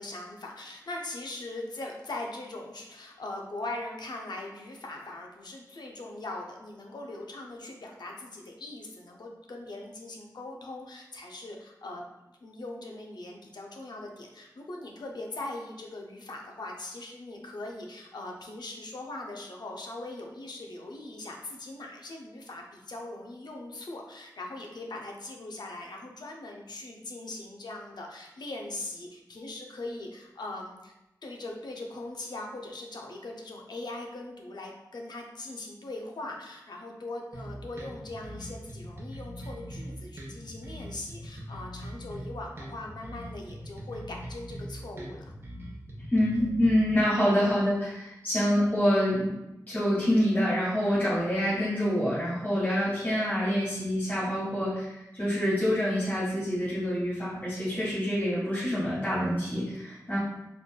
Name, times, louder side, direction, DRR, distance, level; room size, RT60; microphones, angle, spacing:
voice 1, 0.0-12.1 12.4-30.9 31.2-45.2, left 2 dB, 80° left, 1 dB, 0.6 m, -40 dB
sound 1, 37.3-46.9, equal, 35° right, 0.8 m, -41 dB
voice 2, 46.1-49.3 49.7-60.2, equal, 25° left, -11 dB, 1.5 m, -26 dB
4.0 x 3.2 x 2.2 m, 0.93 s
wide cardioid pair, 60°, 7 cm